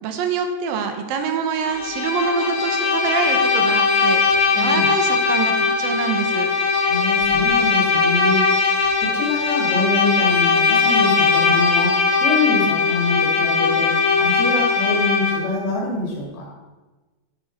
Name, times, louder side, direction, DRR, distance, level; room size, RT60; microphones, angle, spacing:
voice 1, 0.0-6.5, right 5 dB, 75° right, 6 dB, 2.6 m, -25 dB
Bowed string instrument, 1.6-15.5, left 4 dB, 50° left, 1.6 m, -19 dB
voice 2, 4.5-4.9 6.8-8.4 9.0-16.5, left 3 dB, 75° left, -1 dB, 3.8 m, -25 dB
11.5 x 9.8 x 4.3 m, 1.2 s
omnidirectional pair, 4.5 m